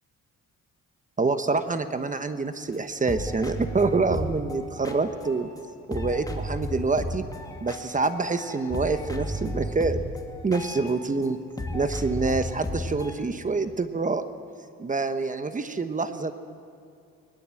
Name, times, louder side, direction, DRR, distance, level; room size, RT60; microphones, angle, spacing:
voice 1, 1.2-5.5 5.9-7.2 7.6-10.0 10.4-11.4 11.7-14.2 14.8-16.3, right 3 dB, 25° right, 10 dB, 1.1 m, -26 dB
sound 1, 2.7-2.8 3.1-5.7 5.9-11.3 11.6-13.1, left 1 dB, 10° left, 2.4 m, -34 dB
21.0 x 19.5 x 7.7 m, 2.4 s
cardioid pair, 90°, 30 cm